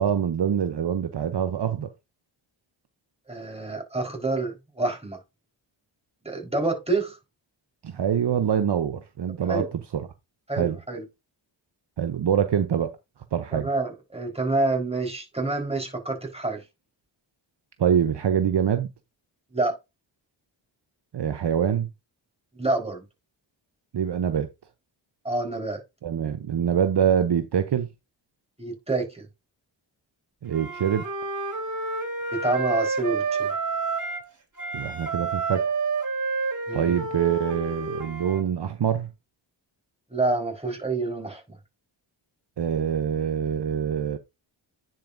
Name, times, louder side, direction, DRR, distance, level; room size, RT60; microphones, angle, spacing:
voice 1, 0.0-1.9 7.8-9.7 9.9-10.1 10.6-10.8 12.0-13.0 13.3-13.7 17.8-18.9 21.1-21.9 23.9-24.5 26.0-27.9 30.4-31.1 34.7-35.7 36.7-39.1 42.6-44.2, right 8 dB, 60° right, 0.8 m, -25 dB
voice 2, 3.3-5.2 6.2-7.2 9.5-9.7 10.5-11.0 13.5-16.6 19.5-19.8 22.5-23.0 25.2-25.8 28.6-29.3 32.3-33.5 36.7-37.0 40.1-41.6, right 2 dB, 10° right, 4.2 m, -27 dB
Wind instrument woodwind instrument, 30.5-34.3 34.6-38.4, right 4 dB, 40° right, 3.9 m, -29 dB
10.0 x 5.6 x 2.6 m
cardioid pair, 55°, 48 cm